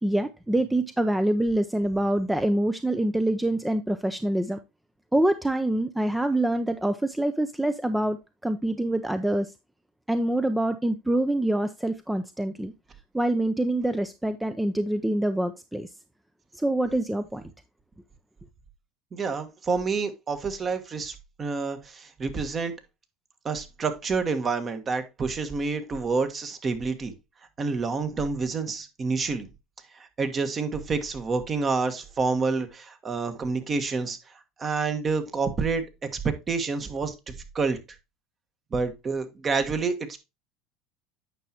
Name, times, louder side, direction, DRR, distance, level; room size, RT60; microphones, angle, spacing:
voice 1, 0.0-4.6 5.1-8.2 8.4-9.5 10.1-12.7 13.1-15.9 16.5-17.4, right 1 dB, 5° right, 0.6 m, -25 dB
voice 2, 19.1-22.7 23.4-27.1 27.6-29.5 29.9-34.2 34.6-35.8 36.1-37.1 37.5-37.8 38.7-40.2, right 4 dB, 30° right, 1.4 m, -28 dB
9.0 x 5.9 x 2.9 m
hypercardioid pair, 75°, 0 cm